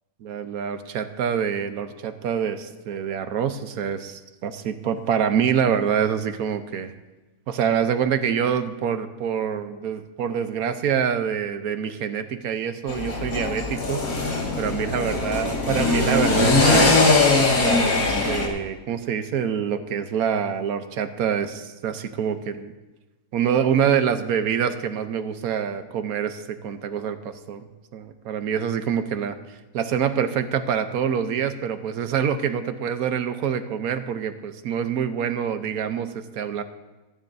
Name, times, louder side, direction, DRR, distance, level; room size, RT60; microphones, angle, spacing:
voice 1, 0.2-6.9 7.5-14.1 14.6-17.0 17.6-22.7 23.3-27.6 27.9-29.4 29.7-36.6, right 8 dB, 85° right, 9 dB, 1.3 m, -26 dB
sound 1, 12.9-18.5, left 3 dB, 85° left, 2.4 m, -21 dB
24.5 x 10.0 x 2.7 m, 1.1 s
omnidirectional pair, 1.5 m